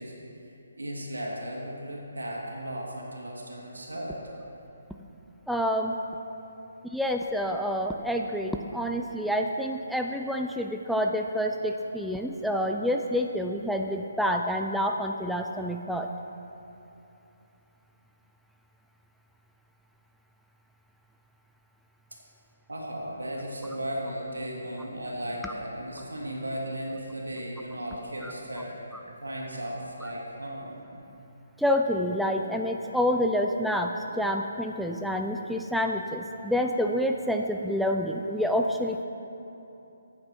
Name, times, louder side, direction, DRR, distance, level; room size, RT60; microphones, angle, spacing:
voice 1, 0.0-4.2 22.7-30.8, equal, 85° right, -2 dB, 2.5 m, -36 dB
voice 2, 5.5-6.0 6.9-16.1 28.2-28.3 31.6-39.0, equal, ahead, 2 dB, 0.4 m, -28 dB
13.0 x 8.7 x 4.4 m, 2.8 s
figure-of-eight pair, 145°, 0 cm